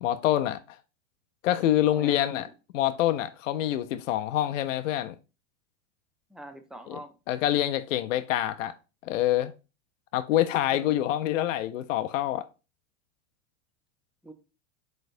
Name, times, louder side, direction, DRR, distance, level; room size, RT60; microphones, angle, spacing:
voice 1, 0.0-0.6 1.4-2.5 2.7-5.1 6.9-7.0 7.3-8.7 9.0-9.5 10.1-12.5, left 13 dB, 85° left, 0.5 m, -26 dB
voice 2, 1.9-2.5 6.3-7.1 10.7-11.0 14.2-14.3, right 1 dB, ahead, 0.4 m, -44 dB
4.2 x 3.9 x 2.6 m
hypercardioid pair, 115°, 38 cm